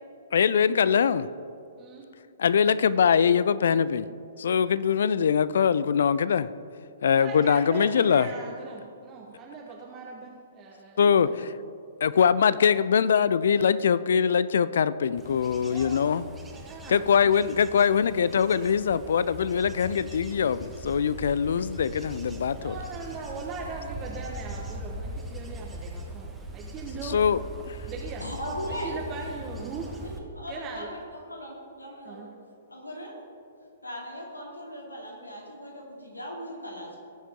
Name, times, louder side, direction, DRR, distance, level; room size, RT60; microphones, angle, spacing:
voice 1, 0.3-1.3 2.4-4.1 4.4-6.5 7.0-8.3 11.0-11.5 12.0-16.2 16.9-22.8 27.1-27.4 27.7-27.8, left 7 dB, 60° left, 17 dB, 0.4 m, -22 dB
voice 2, 1.8-2.1 7.1-11.4 15.6-16.1 16.5-17.0 22.6-27.2 27.8-28.3 28.7-29.9 30.5-30.9 32.0-32.3, right 4 dB, 25° right, -2 dB, 1.3 m, -40 dB
Bird / Insect / Wind, 15.2-30.2, right 1 dB, 10° right, 1.3 m, -40 dB
voice 3, 28.2-29.0 30.0-31.0 31.3-32.3 32.7-33.1 33.8-37.0, equal, 85° left, -1 dB, 2.6 m, -38 dB
18.5 x 7.3 x 3.6 m, 2.4 s
figure-of-eight pair, 115°, 0 cm